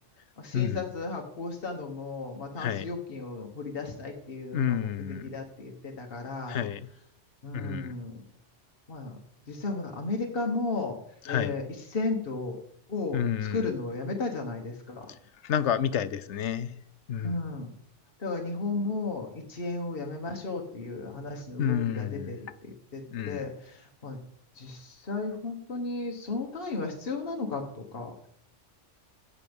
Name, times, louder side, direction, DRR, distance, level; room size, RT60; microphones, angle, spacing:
voice 1, 0.4-6.6 7.4-8.2 8.9-9.2 9.5-11.0 11.3-12.6 12.9-13.2 13.5-15.1 17.2-17.7 18.2-24.2 24.6-28.3, left 3 dB, 50° left, 1 dB, 1.7 m, -34 dB
voice 2, 4.5-5.3 6.5-6.9 7.5-7.9 11.3-11.5 13.1-13.7 15.4-16.7 17.1-17.4 21.6-22.4 23.1-23.5, left 9 dB, 75° left, 15 dB, 1.0 m, -29 dB
16.0 x 6.9 x 5.3 m, 0.67 s
omnidirectional pair, 1.2 m